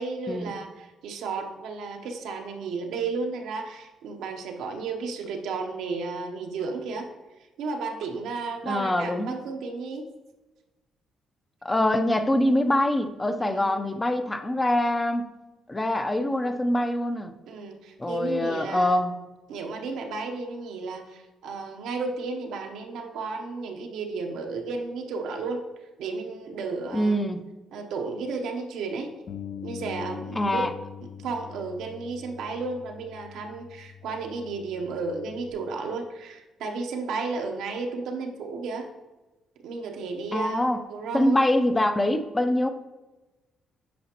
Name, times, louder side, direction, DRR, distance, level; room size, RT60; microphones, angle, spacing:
voice 1, 0.0-7.1 7.6-10.1 13.4-13.8 17.5-19.0 19.5-25.6 26.0-27.2 27.7-29.1 29.6-30.7 31.2-38.9 39.6-41.4, right 4 dB, 85° right, 3 dB, 0.8 m, -33 dB
voice 2, 8.6-9.3 11.6-15.3 15.7-17.3 18.0-19.2 26.9-27.4 30.4-30.7 40.3-40.8 41.1-42.7, left 1 dB, 15° left, 8 dB, 0.5 m, -24 dB
Bass guitar, 29.3-35.5, left 8 dB, 60° left, 0.5 m, -42 dB
9.4 x 4.9 x 2.9 m, 1.1 s
cardioid pair, 90°, 0 cm